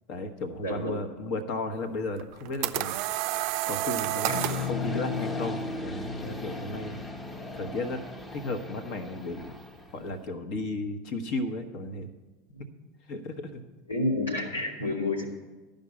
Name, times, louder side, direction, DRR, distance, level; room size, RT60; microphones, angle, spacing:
voice 1, 0.1-3.0 3.7-7.0 7.5-8.0 8.3-9.5 9.9-12.1 13.1-13.6, left 2 dB, 50° left, 6 dB, 1.1 m, -34 dB
voice 2, 0.6-0.9 4.3-4.4 12.5-12.6 13.9-15.2, left 2 dB, 80° left, 0 dB, 2.1 m, -29 dB
sound 1, 2.2-4.7, right 15 dB, 55° right, 0.4 m, -30 dB
sound 2, 4.3-10.0, left 4 dB, 20° left, 1.0 m, -35 dB
12.0 x 5.3 x 8.4 m, 1.2 s
figure-of-eight pair, 80°, 0 cm